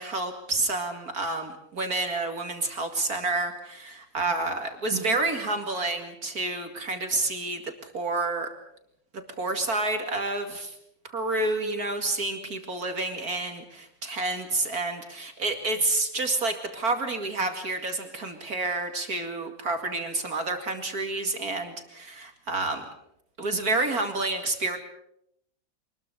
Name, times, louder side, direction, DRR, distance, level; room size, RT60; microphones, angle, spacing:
voice 1, 0.0-8.5 9.1-10.7 11.0-22.9 23.4-24.8, right 2 dB, 50° right, 5 dB, 2.7 m, -29 dB
24.5 x 20.5 x 6.8 m, 0.74 s
omnidirectional pair, 2.1 m